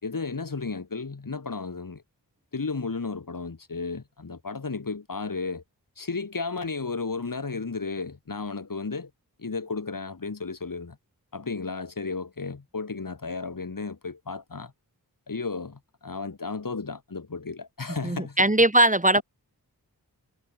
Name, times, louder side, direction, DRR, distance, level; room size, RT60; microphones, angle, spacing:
voice 1, 0.0-2.0 2.5-5.6 6.0-9.1 9.4-11.0 11.3-14.7 15.3-18.5 19.1-19.2, left 4 dB, 55° left, 4.4 m, -33 dB
voice 2, 18.0-19.2, right 1 dB, 20° right, 2.8 m, -20 dB
wide cardioid pair, 85°, 39 cm